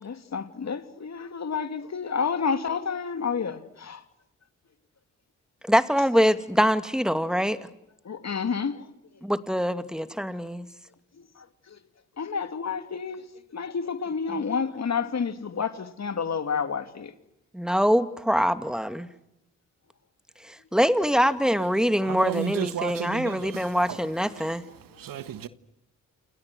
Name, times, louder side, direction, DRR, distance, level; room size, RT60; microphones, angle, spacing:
voice 1, 0.0-4.0 8.1-8.7 12.2-13.2 13.5-17.1, left 6 dB, 50° left, 2.9 m, -29 dB
voice 2, 5.7-7.6 9.2-10.7 14.3-14.4 17.5-19.1 20.5-24.6, equal, ahead, 2.5 m, -24 dB
voice 3, 22.1-24.0 25.0-25.5, right 10 dB, 70° right, 1.6 m, -33 dB
29.5 x 29.0 x 6.4 m
hypercardioid pair, 45°, 35 cm